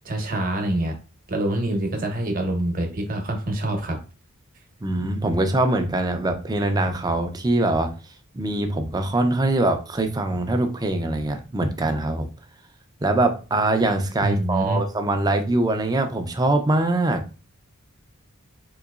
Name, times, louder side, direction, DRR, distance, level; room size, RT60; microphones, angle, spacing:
voice 1, 0.0-0.9 1.3-4.0 14.2-14.8, right 1 dB, 40° right, 3 dB, 0.9 m, -25 dB
voice 2, 4.8-7.9 8.3-12.3 13.0-17.2, right 2 dB, 15° right, 6 dB, 0.4 m, -23 dB
3.8 x 2.9 x 2.4 m, 0.34 s
head